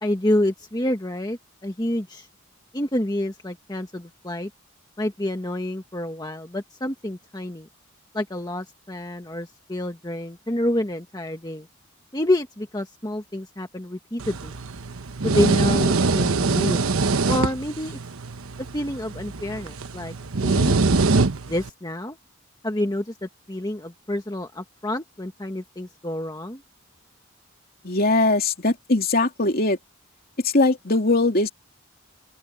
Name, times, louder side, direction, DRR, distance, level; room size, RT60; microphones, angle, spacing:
voice 1, 0.0-2.3 2.7-4.5 5.0-7.7 8.1-11.7 12.1-14.5 15.2-16.8 17.3-18.0 18.7-20.1 20.4-20.8 21.5-22.2 22.6-26.6, left 1 dB, 20° left, 1.5 m, -28 dB
sound 1, 14.2-21.7, right 3 dB, 90° right, 1.1 m, -23 dB
voice 2, 27.8-29.8 30.4-31.5, left 2 dB, 45° left, 2.9 m, -20 dB
open air
head